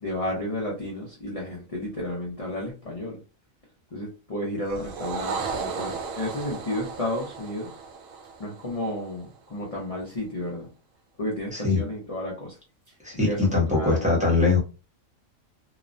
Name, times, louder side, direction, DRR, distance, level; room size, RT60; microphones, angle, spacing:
voice 1, 0.0-3.2 3.9-7.7 8.4-10.7 11.2-12.6 13.2-14.4, left 1 dB, 35° left, 0.6 m, -32 dB
sound 1, 4.6-9.2, right 5 dB, 85° right, 1.0 m, -35 dB
voice 2, 13.0-14.6, left 3 dB, 5° right, 0.8 m, -22 dB
3.0 x 2.1 x 2.5 m
omnidirectional pair, 1.4 m